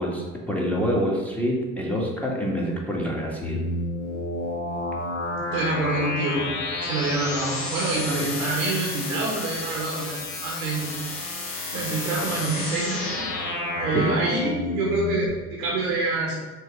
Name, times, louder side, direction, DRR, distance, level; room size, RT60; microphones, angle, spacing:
voice 1, 0.0-3.6 13.9-14.2, equal, 5° left, -3 dB, 2.0 m, -26 dB
sound 1, 3.4-15.3, left 2 dB, 65° left, 1.6 m, -30 dB
voice 2, 5.3-6.5 6.8-10.9 11.7-13.2 13.8-16.3, right 3 dB, 65° right, -2 dB, 1.8 m, -26 dB
6.5 x 4.5 x 6.5 m, 1.3 s
figure-of-eight pair, 60°, 42 cm